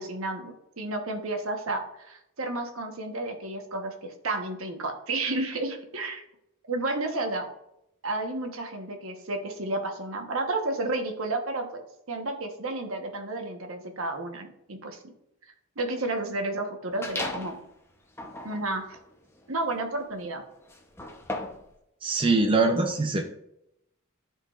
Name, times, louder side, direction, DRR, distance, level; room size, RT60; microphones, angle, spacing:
voice 1, 0.0-6.2 6.7-7.5 8.0-11.8 12.1-15.0 15.8-17.6 18.4-19.0 19.5-20.4, right 2 dB, 70° right, 4 dB, 1.2 m, -31 dB
sound 1, 17.0-17.6 18.1-21.7, left 2 dB, 10° left, 0.8 m, -37 dB
voice 2, 22.0-23.2, right 3 dB, 25° right, 3 dB, 0.6 m, -23 dB
13.0 x 4.5 x 2.5 m, 0.81 s
head